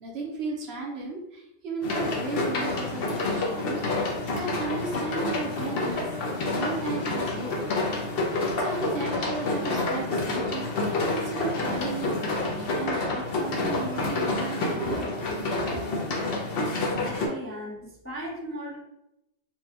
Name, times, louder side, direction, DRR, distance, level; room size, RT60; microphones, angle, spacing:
voice 1, 0.0-6.1 6.6-7.8 8.4-12.3 12.5-15.9, right 3 dB, 65° right, -1 dB, 1.0 m, -35 dB
sound 1, 1.8-17.3, left 2 dB, 60° left, 0.9 m, -28 dB
voice 2, 16.7-18.8, equal, 15° left, -4 dB, 0.4 m, -38 dB
4.5 x 2.2 x 2.8 m, 0.88 s
omnidirectional pair, 1.2 m